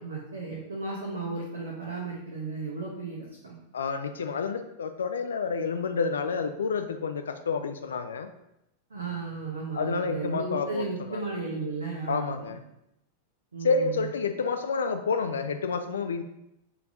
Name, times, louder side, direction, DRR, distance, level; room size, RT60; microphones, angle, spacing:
voice 1, 0.0-3.6 8.9-12.5 13.5-14.1, right 4 dB, 75° right, -3 dB, 0.7 m, -35 dB
voice 2, 3.7-8.3 9.8-11.2 12.1-12.6 13.6-16.2, left 5 dB, 70° left, 8 dB, 0.3 m, -29 dB
5.8 x 3.3 x 2.6 m, 0.84 s
figure-of-eight pair, 90°, 0 cm